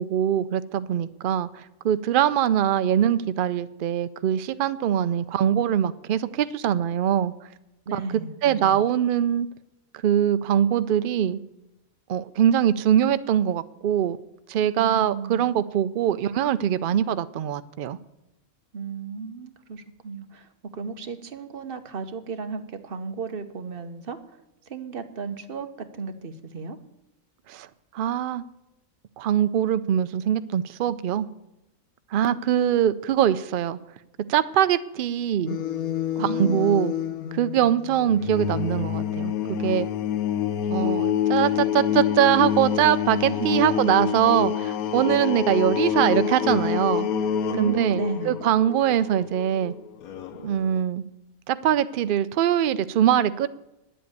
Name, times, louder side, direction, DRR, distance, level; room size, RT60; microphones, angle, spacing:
voice 1, 0.0-7.3 7.9-8.0 8.4-9.5 10.0-11.4 12.1-14.2 14.5-18.0 27.5-27.7 27.9-28.4 29.2-31.3 32.1-33.8 34.3-35.6 36.2-36.9 37.3-39.3 39.6-39.9 40.7-47.1 47.6-49.7 50.4-51.0 51.5-53.5, right 10 dB, 90° right, 13 dB, 0.4 m, -22 dB
voice 2, 7.9-8.8 14.8-15.5 18.7-24.4 24.7-26.8 36.2-36.8 43.2-43.5 47.5-48.4, right 4 dB, 45° right, 8 dB, 1.1 m, -34 dB
sound 1, 35.5-50.8, left 9 dB, 80° left, 1.2 m, -27 dB
10.0 x 7.8 x 9.3 m, 0.91 s
omnidirectional pair, 1.5 m